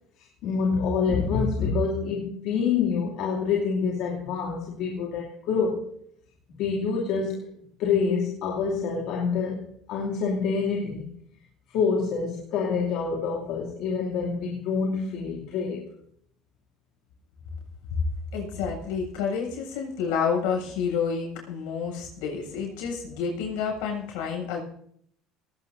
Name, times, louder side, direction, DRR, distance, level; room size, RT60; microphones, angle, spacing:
voice 1, 0.2-5.9 6.6-11.1 11.7-15.9, left 5 dB, 65° left, -2 dB, 2.8 m, -27 dB
voice 2, 18.3-24.6, left 6 dB, 85° left, 1 dB, 7.3 m, -29 dB
19.0 x 17.5 x 2.7 m, 0.67 s
supercardioid pair, 115°, 0 cm